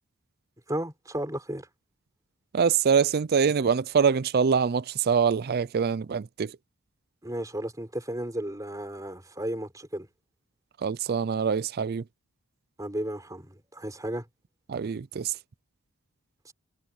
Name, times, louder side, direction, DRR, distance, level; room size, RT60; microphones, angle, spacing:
voice 1, 0.7-1.7 7.2-10.1 12.8-14.3 16.4-16.5, right 1 dB, 15° right, 4.0 m, -34 dB
voice 2, 2.5-6.5 10.8-12.0 14.7-15.3, right 6 dB, 45° right, 0.4 m, -24 dB
head